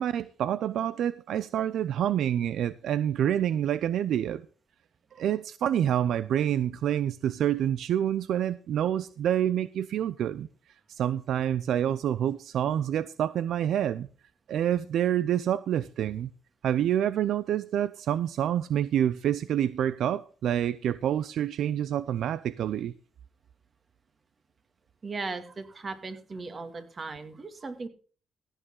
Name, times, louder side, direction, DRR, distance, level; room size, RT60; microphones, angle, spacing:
voice 1, 0.0-4.4 5.2-10.5 11.0-14.1 14.5-16.3 16.6-22.9, right 10 dB, 75° right, 0.5 m, -27 dB
voice 2, 25.0-27.9, right 3 dB, 35° right, 2.3 m, -37 dB
15.5 x 9.0 x 3.8 m
cardioid pair, 95°, 0 cm